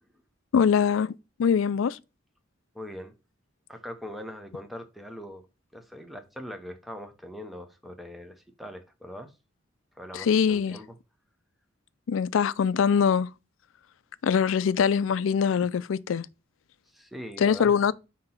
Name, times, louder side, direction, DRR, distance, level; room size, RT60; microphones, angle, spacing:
voice 1, 0.5-1.1 1.4-2.0 10.1-10.8 12.1-13.3 14.2-16.3 17.4-17.9, left 7 dB, 80° left, 0.4 m, -23 dB
voice 2, 2.7-3.1 3.7-5.4 5.7-9.3 9.9-11.0 16.9-17.8, equal, ahead, 0.8 m, -41 dB
5.9 x 2.9 x 5.6 m
head